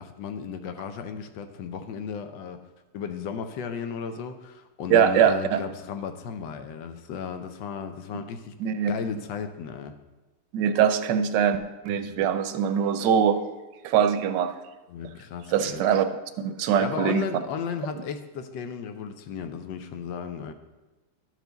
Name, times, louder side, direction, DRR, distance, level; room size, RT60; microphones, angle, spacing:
voice 1, 0.0-2.6 2.9-8.5 8.9-10.0 12.1-12.3 14.9-15.9 16.8-20.5, left 6 dB, 90° left, 8 dB, 1.4 m, -34 dB
voice 2, 4.9-5.6 8.6-8.9 10.5-13.4 13.8-14.5 15.5-16.1 16.4-17.3, right 8 dB, 80° right, 9 dB, 1.2 m, -22 dB
12.0 x 4.7 x 3.9 m, 1.1 s
omnidirectional pair, 2.0 m